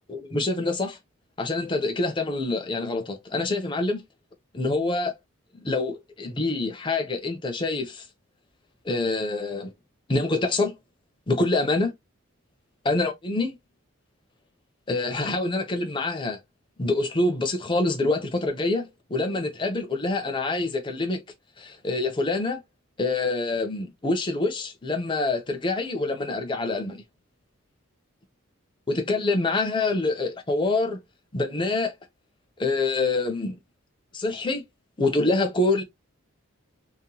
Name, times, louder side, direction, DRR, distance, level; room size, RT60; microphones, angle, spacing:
voice 1, 0.1-1.0 1.4-4.0 4.5-5.1 5.5-8.1 8.8-9.7 10.1-10.7 11.3-11.9 12.9-13.5 14.9-16.4 16.8-21.2 21.6-22.6 23.0-27.0 28.9-31.0 31.3-31.9 32.6-33.6 34.1-34.6 35.0-35.8, left 2 dB, 20° left, 0.5 m, -26 dB
2.9 x 2.1 x 2.6 m
head